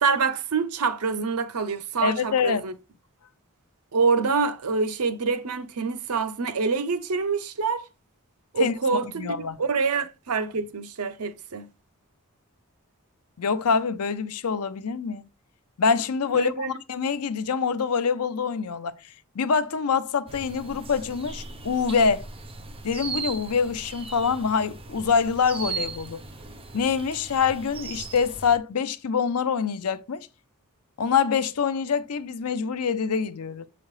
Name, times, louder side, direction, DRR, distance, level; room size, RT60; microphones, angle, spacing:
voice 1, 0.0-2.7 3.9-7.9 8.5-11.7 16.3-16.7, right 5 dB, 80° right, 0.7 m, -26 dB
voice 2, 2.0-2.6 8.6-8.7 9.2-9.6 13.4-15.2 15.8-18.9 19.3-22.3 22.8-26.2 26.7-30.3 31.0-33.7, left 6 dB, 85° left, 0.6 m, -25 dB
sound 1, 20.3-28.6, right 4 dB, 25° right, 0.7 m, -38 dB
7.4 x 5.0 x 3.1 m
head